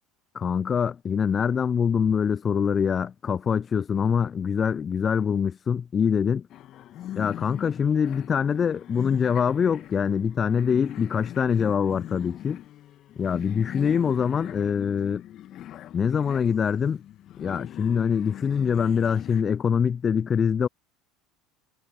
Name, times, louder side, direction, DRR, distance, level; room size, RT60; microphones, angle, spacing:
voice 1, 0.3-6.5 7.2-12.6 13.2-15.2 15.9-17.0 17.4-20.7, left 7 dB, 30° left, 0.4 m, -24 dB
sound 1, 6.5-19.4, left 12 dB, 45° left, 1.5 m, -41 dB
hypercardioid pair, 75°, 0 cm